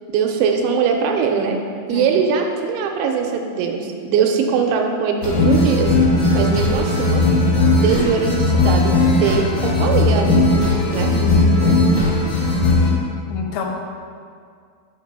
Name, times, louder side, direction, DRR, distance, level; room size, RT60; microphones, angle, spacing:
voice 1, 0.1-1.6 1.9-5.9 6.3-7.2 7.8-10.5 10.9-11.1, right 6 dB, 85° right, 3 dB, 2.8 m, -21 dB
sound 1, 5.2-12.9, left 2 dB, 55° left, 1.8 m, -17 dB
voice 2, 11.1-11.4 13.3-13.7, left 7 dB, 85° left, 1 dB, 2.9 m, -28 dB
6.5 x 5.1 x 5.3 m, 2.2 s
omnidirectional pair, 5.5 m